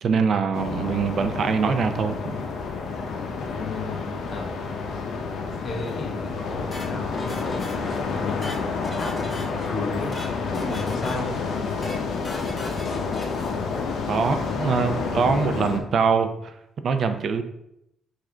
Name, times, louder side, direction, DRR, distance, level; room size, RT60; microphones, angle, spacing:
voice 1, 0.0-2.3 14.1-16.5 16.8-17.4, right 5 dB, 60° right, 8 dB, 0.4 m, -23 dB
sound 1, 0.5-15.8, left 4 dB, 70° left, 0.6 m, -29 dB
voice 2, 3.5-4.5 5.6-8.7 8.9-11.4, left 3 dB, 55° left, 1 dB, 1.1 m, -34 dB
sound 2, 6.7-8.0 8.3-9.7 10.0-10.3 10.5-11.4 11.7-12.0 12.2-13.5, left 2 dB, 30° left, 1.2 m, -37 dB
4.8 x 2.5 x 4.4 m, 0.80 s
cardioid pair, 90°, 0 cm